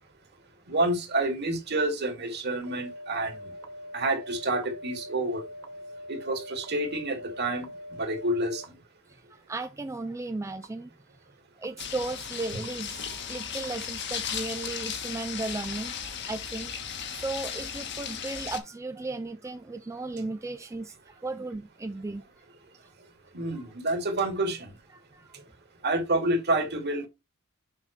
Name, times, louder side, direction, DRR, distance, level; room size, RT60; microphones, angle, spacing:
voice 1, 0.7-3.3 3.9-5.4 6.1-7.7 8.0-8.6 23.3-24.7 25.8-27.1, right 2 dB, 55° right, 2.1 m, -28 dB
sound 1, 2.6-8.7 9.6-9.7 10.6-10.7 11.6-11.7 12.6-12.7 13.6-13.7 14.6-14.7 15.6-15.7, equal, 90° right, 1.3 m, -43 dB
voice 2, 9.3-10.9 11.6-16.9 17.1-22.2 23.5-23.6 24.9-25.3, right 2 dB, 15° right, 0.3 m, -35 dB
sound 2, 11.8-18.6, left 8 dB, 55° left, 1.4 m, -36 dB
7.4 x 5.6 x 3.0 m
head